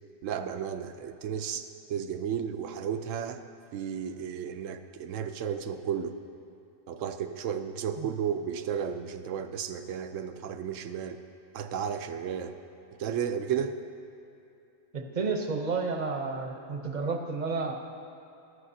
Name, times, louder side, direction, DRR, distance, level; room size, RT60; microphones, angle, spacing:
voice 1, 0.2-3.4 3.7-6.2 6.9-11.2 11.5-12.6 13.0-13.7, right 8 dB, 80° right, 9 dB, 1.0 m, -33 dB
voice 2, 14.9-17.7, right 4 dB, 40° right, 4 dB, 0.8 m, -31 dB
15.5 x 11.5 x 2.7 m, 2.7 s
omnidirectional pair, 1.3 m